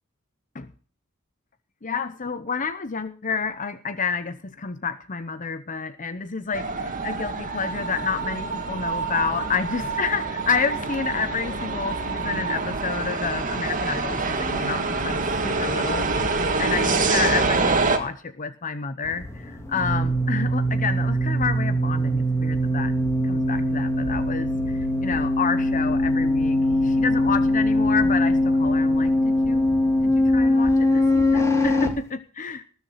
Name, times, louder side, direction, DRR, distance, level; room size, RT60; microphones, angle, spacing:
voice 1, 1.8-22.9 23.2-29.7 30.0-32.6, left 5 dB, 40° left, 11 dB, 0.9 m, -29 dB
sound 1, 6.5-18.0, right 3 dB, 40° right, 2.2 m, -26 dB
sound 2, 19.1-31.9, left 1 dB, 15° left, 2.8 m, -22 dB
19.5 x 7.0 x 5.7 m, 0.41 s
head